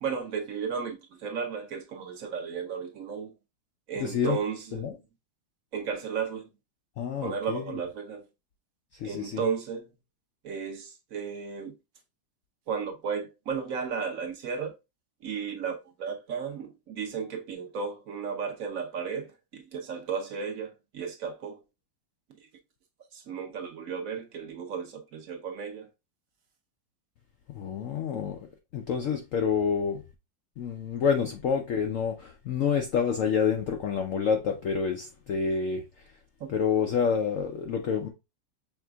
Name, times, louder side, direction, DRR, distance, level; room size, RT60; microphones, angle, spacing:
voice 1, 0.0-3.3 3.9-4.9 5.7-6.5 7.2-8.2 9.0-9.8 10.4-11.7 12.7-14.7 15.2-21.6 23.1-25.9 36.4-36.5, right 6 dB, 55° right, 1.1 m, -34 dB
voice 2, 4.0-4.4 4.7-5.0 7.0-7.8 8.9-9.4 27.5-28.5 28.7-30.0 30.6-36.1 36.5-38.1, left 6 dB, 80° left, 0.7 m, -28 dB
5.9 x 3.7 x 2.3 m
omnidirectional pair, 2.0 m